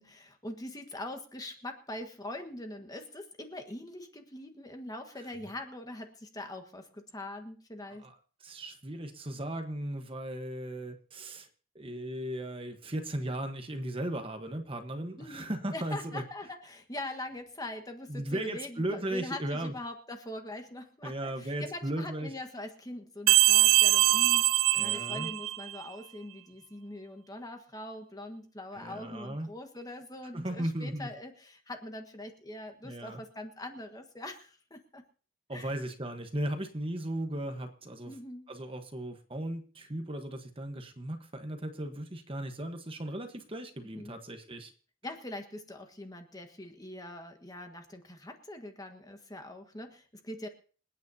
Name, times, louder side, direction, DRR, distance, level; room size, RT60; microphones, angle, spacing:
voice 1, 0.0-8.0 15.2-35.0 35.5-35.7 38.1-38.5 43.9-44.1 45.0-50.5, left 1 dB, 15° left, 5 dB, 1.5 m, -43 dB
voice 2, 7.9-11.5 11.7-16.2 18.1-19.7 21.0-22.3 24.7-25.3 28.7-29.5 30.3-31.1 32.8-33.2 35.5-38.1 38.5-44.7, right 1 dB, 25° right, 5 dB, 1.2 m, -36 dB
sound 1, 23.3-25.8, right 17 dB, 80° right, 0.5 m, -23 dB
27.5 x 9.2 x 2.8 m, 0.40 s
head